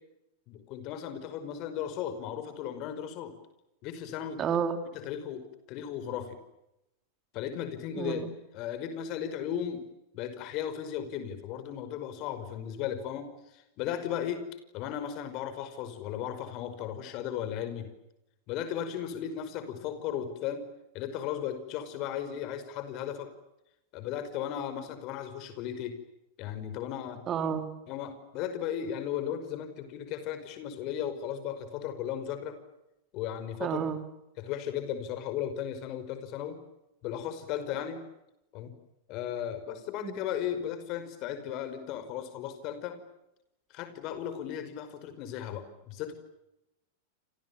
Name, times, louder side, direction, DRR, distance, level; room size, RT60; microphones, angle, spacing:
voice 1, 0.5-3.3 3.8-4.4 4.9-5.4 5.7-6.4 7.3-8.3 8.5-9.8 10.1-14.5 14.7-17.9 18.5-20.7 20.9-23.3 23.9-26.0 26.4-27.2 27.9-32.6 33.1-33.8 34.4-36.6 37.0-38.0 38.5-38.7 39.1-43.0 43.7-46.1, left 9 dB, 40° left, 10 dB, 5.3 m, -36 dB
voice 2, 4.4-4.8 8.0-8.3 27.3-27.7 33.6-34.0 40.0-40.1, right 7 dB, 30° right, 9 dB, 3.4 m, -30 dB
28.5 x 28.5 x 7.2 m, 0.89 s
figure-of-eight pair, 90°, 0 cm